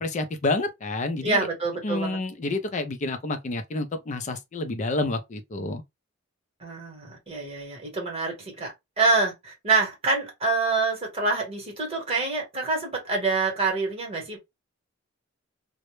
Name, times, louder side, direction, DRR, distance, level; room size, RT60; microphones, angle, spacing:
voice 1, 0.0-1.5 1.8-5.8, left 2 dB, 35° left, 0.4 m, -29 dB
voice 2, 1.2-2.2 6.6-14.4, right 3 dB, 30° right, 1.0 m, -26 dB
2.1 x 2.0 x 2.9 m
head